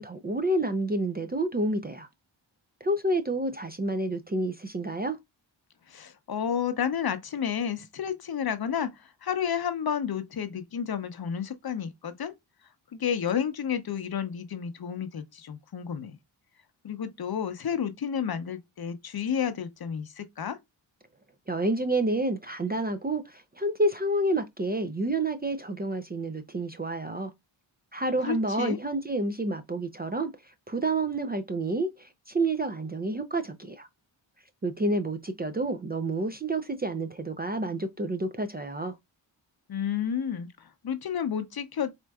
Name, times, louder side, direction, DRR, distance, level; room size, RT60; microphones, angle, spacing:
voice 1, 0.0-2.1 2.8-5.2 21.5-27.3 27.9-33.9 34.6-39.0, right 2 dB, 20° right, 0.4 m, -29 dB
voice 2, 5.9-12.3 12.9-16.2 16.8-20.6 28.2-28.8 39.7-41.9, left 8 dB, 50° left, 0.7 m, -31 dB
4.3 x 2.5 x 2.2 m
cardioid pair, 60°, 47 cm